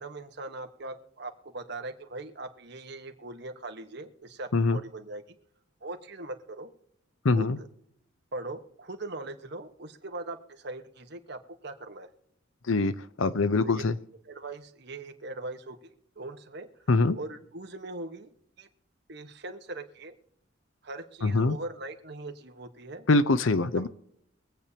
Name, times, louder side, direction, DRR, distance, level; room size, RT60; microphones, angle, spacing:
voice 1, 0.0-5.2 5.8-6.7 7.3-7.7 8.3-12.1 13.6-13.8 14.2-16.7 17.1-18.7 19.1-20.2 20.8-23.1 23.7-23.9, right 2 dB, 55° right, 5 dB, 1.3 m, -40 dB
voice 2, 7.2-7.6 12.7-12.9 13.2-14.0 16.9-17.2 21.2-21.6 23.1-23.9, left 3 dB, 80° left, 14 dB, 0.7 m, -23 dB
24.0 x 8.4 x 2.9 m, 0.79 s
head